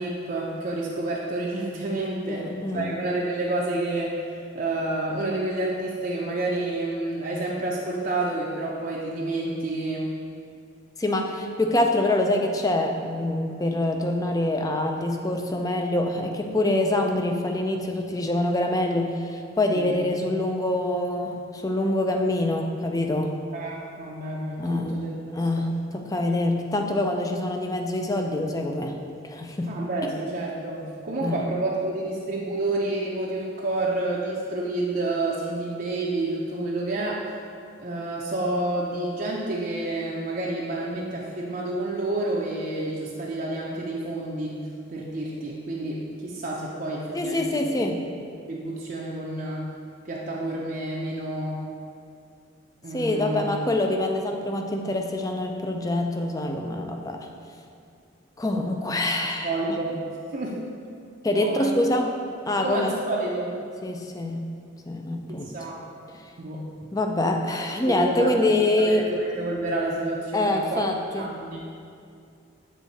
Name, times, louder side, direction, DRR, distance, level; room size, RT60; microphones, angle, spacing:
voice 1, 0.0-2.5 2.7-10.1 19.7-20.0 23.5-25.1 25.6-25.7 29.7-37.2 37.8-44.6 44.9-47.6 48.5-49.7 50.0-51.6 52.8-53.4 59.1-59.9 60.3-60.6 61.4-61.7 62.0-62.1 62.6-63.5 65.3-65.8 66.4-66.6 67.5-68.3 68.8-70.8 71.2-71.6, right 2 dB, 45° right, -4 dB, 0.6 m, -29 dB
voice 2, 2.3-2.9 11.0-23.3 24.6-25.0 25.3-29.0 29.2-29.7 30.0-30.1 31.2-31.4 47.1-48.0 52.9-57.3 58.4-59.8 61.2-62.1 62.5-62.9 63.8-64.5 64.9-65.5 66.9-69.1 70.3-71.4, left 1 dB, 20° left, 3 dB, 0.4 m, -25 dB
7.4 x 3.6 x 4.1 m, 2.4 s
head